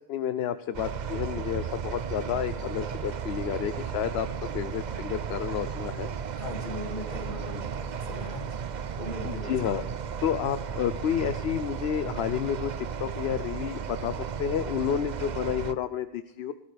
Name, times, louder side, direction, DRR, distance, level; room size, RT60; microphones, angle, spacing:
voice 1, 0.1-6.1 9.2-9.8 10.2-16.5, left 9 dB, 80° left, 12 dB, 0.9 m, -30 dB
sound 1, 0.7-15.7, right 7 dB, 50° right, 0.6 m, -34 dB
voice 2, 6.4-8.6 9.0-9.9, left 1 dB, 50° left, 1 dB, 2.7 m, -39 dB
18.0 x 12.0 x 3.4 m, 0.90 s
omnidirectional pair, 1.1 m